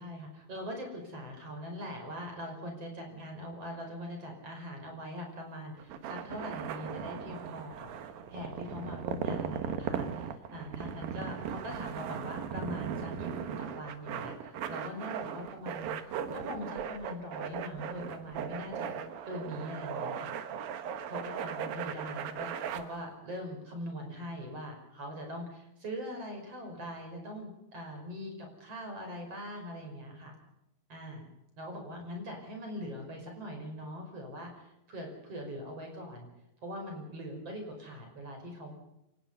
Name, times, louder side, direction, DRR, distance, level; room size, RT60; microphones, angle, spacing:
voice 1, 0.0-7.9 8.3-15.9 16.3-18.9 19.3-20.3 21.1-30.3 30.9-31.3 31.6-36.3 36.6-38.7, equal, 40° right, 3 dB, 6.3 m, -42 dB
sound 1, 5.8-22.8, right 8 dB, 70° right, 3.0 m, -38 dB
27.5 x 18.5 x 5.6 m, 0.87 s
omnidirectional pair, 4.4 m